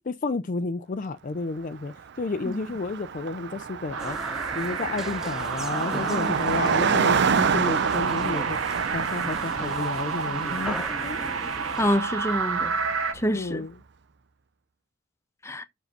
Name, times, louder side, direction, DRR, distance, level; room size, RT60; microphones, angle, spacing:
voice 1, 0.1-11.2 13.3-13.7, left 3 dB, 40° left, 0.4 m, -31 dB
Car passing by, 1.9-2.0 2.2-13.2, right 6 dB, 55° right, 0.5 m, -29 dB
sound 1, 3.9-13.1, right 5 dB, 85° right, 1.2 m, -31 dB
sound 2, 4.0-12.0, equal, ahead, 1.4 m, -38 dB
voice 2, 11.8-12.7 13.1-13.6 15.4-15.6, equal, 15° left, 0.9 m, -27 dB
6.6 x 4.9 x 6.5 m
head